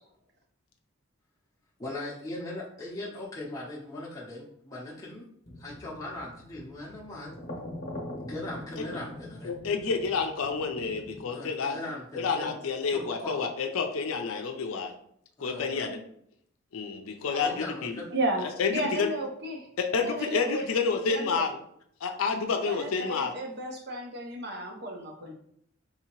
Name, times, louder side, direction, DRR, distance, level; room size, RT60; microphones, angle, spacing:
voice 1, 1.8-5.3 5.6-7.3 8.3-9.5 11.3-12.6 12.9-13.5 15.4-15.7 17.4-18.1, left 2 dB, 15° left, -5 dB, 0.7 m, -39 dB
sound 1, 5.4-11.3, left 1 dB, 45° left, 0.8 m, -43 dB
voice 2, 9.4-11.8 12.1-14.9 15.4-16.0 16.7-18.0 18.6-19.1 19.8-21.6 22.0-23.3, left 5 dB, 80° left, 4 dB, 0.5 m, -29 dB
voice 3, 17.3-17.6 18.1-18.5 18.7-19.7 20.0-20.7 21.1-21.5 22.6-25.3, right 1 dB, 50° right, 2 dB, 0.7 m, -33 dB
3.9 x 2.7 x 3.0 m, 0.67 s
head